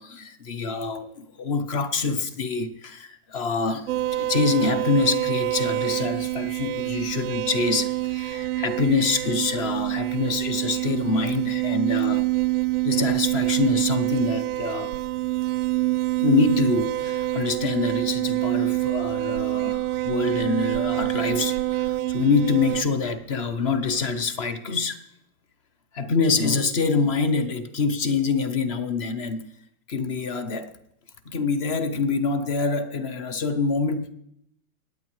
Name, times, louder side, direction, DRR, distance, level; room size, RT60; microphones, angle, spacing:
voice 1, 0.0-12.3 12.8-14.9 16.2-25.0 25.9-29.5 29.9-30.7 31.3-34.1, left 4 dB, 25° left, 13 dB, 0.5 m, -25 dB
sound 1, 3.9-22.8, right 17 dB, 85° right, 0.6 m, -26 dB
25.5 x 8.6 x 3.1 m, 0.75 s
hypercardioid pair, 150°, 44 cm